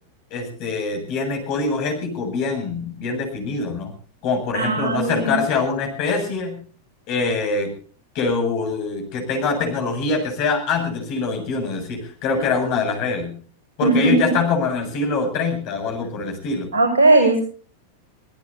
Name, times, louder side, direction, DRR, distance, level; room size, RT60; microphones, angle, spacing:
voice 1, 0.3-3.9 4.2-6.6 7.1-7.7 8.1-13.3 13.8-16.7, left 4 dB, 45° left, 4 dB, 7.7 m, -24 dB
voice 2, 4.5-5.4 13.8-14.3 16.7-17.4, right 2 dB, 65° right, 1 dB, 6.8 m, -18 dB
26.0 x 17.5 x 2.8 m, 0.40 s
figure-of-eight pair, 90°, 0 cm